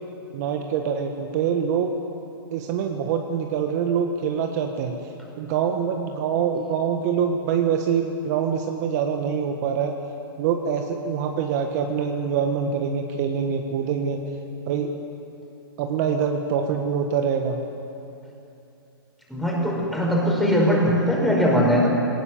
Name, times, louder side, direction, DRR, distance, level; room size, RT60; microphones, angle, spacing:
voice 1, 0.3-1.9 2.5-5.0 5.4-10.0 10.4-14.2 14.7-14.9 15.8-17.6, right 7 dB, 45° right, 4 dB, 1.4 m, -25 dB
voice 2, 19.3-21.9, equal, ahead, -3 dB, 4.9 m, -20 dB
20.5 x 18.5 x 7.1 m, 2.8 s
hypercardioid pair, 130°, 13 cm